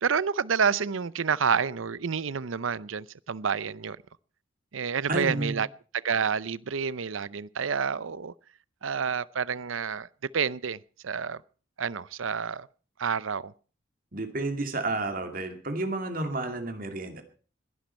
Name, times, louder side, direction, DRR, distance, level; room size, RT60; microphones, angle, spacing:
voice 1, 0.0-4.0 4.7-5.7 5.9-8.3 8.8-10.1 10.3-10.8 11.0-11.4 11.8-12.7 13.0-13.5, right 6 dB, 90° right, 0.6 m, -29 dB
voice 2, 5.1-5.6 14.1-17.2, right 2 dB, 45° right, 2.3 m, -31 dB
21.0 x 11.5 x 4.4 m
head